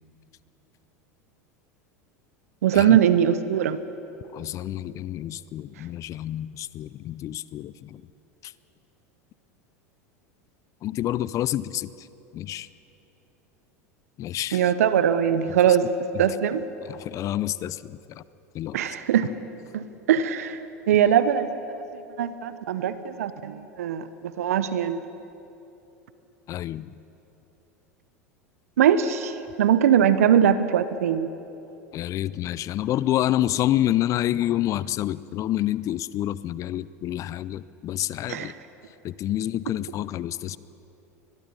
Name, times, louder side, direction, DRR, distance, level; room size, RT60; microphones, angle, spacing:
voice 1, 2.6-3.8 14.5-15.9 16.2-16.6 18.7-19.3 19.7-20.6 20.9-21.5 22.2-25.0 28.8-31.3 38.3-38.5, right 9 dB, 70° right, 13 dB, 0.9 m, -21 dB
voice 2, 4.3-8.0 8.4-8.5 10.8-12.1 12.3-12.7 14.2-14.6 16.8-18.2 18.5-18.8 26.5-26.9 31.9-38.5 39.0-40.6, left 13 dB, 40° left, 18 dB, 0.6 m, -28 dB
22.5 x 21.0 x 5.6 m, 2.9 s
hypercardioid pair, 85°, 8 cm